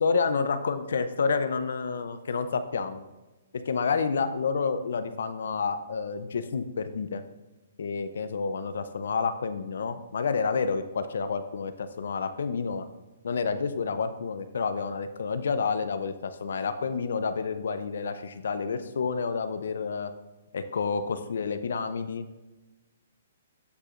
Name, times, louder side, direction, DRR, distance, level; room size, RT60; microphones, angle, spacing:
voice 1, 0.0-3.0 3.7-7.2 7.8-12.9 13.2-20.1 20.5-22.3, left 5 dB, 75° left, 10 dB, 0.5 m, -29 dB
13.5 x 4.8 x 2.5 m, 1.1 s
hypercardioid pair, 140°, 0 cm